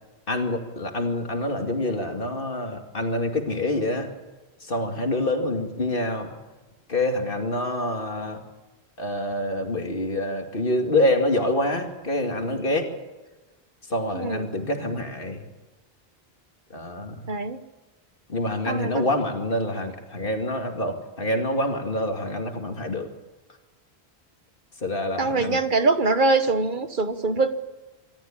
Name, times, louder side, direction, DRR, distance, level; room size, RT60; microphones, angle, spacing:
voice 1, 0.3-4.1 4.6-6.3 6.9-8.4 9.0-12.9 13.9-15.4 16.7-17.3 18.3-23.1 24.8-25.6, left 1 dB, 55° left, 4 dB, 2.5 m, -26 dB
voice 2, 14.1-14.5 17.3-17.6 18.7-19.1 25.2-27.6, right 3 dB, 50° right, 10 dB, 1.2 m, -23 dB
25.5 x 13.5 x 8.8 m, 1.1 s
omnidirectional pair, 1.1 m